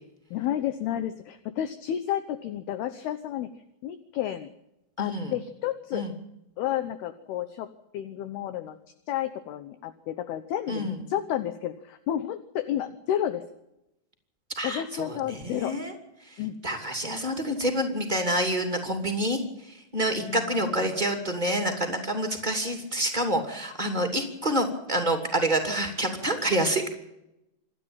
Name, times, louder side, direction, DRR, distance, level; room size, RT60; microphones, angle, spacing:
voice 1, 0.3-3.5 3.8-4.5 5.0-6.0 6.6-7.7 7.9-8.8 9.1-13.4 14.6-15.7 16.4-16.6 20.2-20.5, left 11 dB, 75° left, 11 dB, 2.4 m, -31 dB
voice 2, 5.0-5.3 5.9-6.1 10.7-11.0 14.5-15.9 16.2-26.9, right 1 dB, 20° right, 4 dB, 1.4 m, -28 dB
27.0 x 11.5 x 8.9 m, 0.87 s
omnidirectional pair, 5.6 m